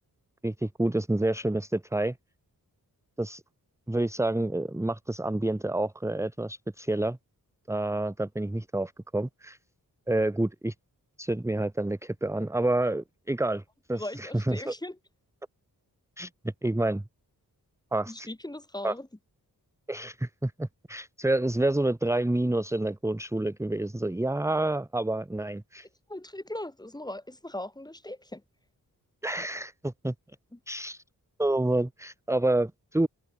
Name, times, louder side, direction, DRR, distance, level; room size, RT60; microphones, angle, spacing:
voice 1, 0.4-2.2 3.2-3.4 3.9-7.2 7.7-9.6 10.1-10.7 11.2-13.6 13.9-14.7 16.2-17.0 17.9-18.3 18.8-18.9 19.9-25.9 29.2-30.1 30.7-31.0 31.4-33.1, right 1 dB, 10° right, 1.0 m, -28 dB
voice 2, 13.9-15.0 18.1-19.1 26.1-28.4 30.5-30.6, left 1 dB, 10° left, 2.1 m, -39 dB
wide cardioid pair, 90°, 37 cm